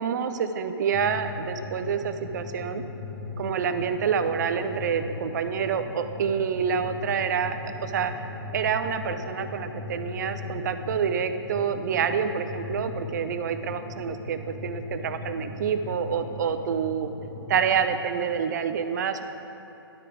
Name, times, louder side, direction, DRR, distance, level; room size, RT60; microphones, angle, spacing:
voice 1, 0.0-2.8 3.4-8.3 8.5-17.1 17.5-19.2, right 7 dB, 45° right, 9 dB, 0.5 m, -27 dB
sound 1, 0.9-17.8, left 3 dB, 15° left, 0.9 m, -38 dB
11.5 x 4.5 x 4.9 m, 2.9 s
hypercardioid pair, 145°, 13 cm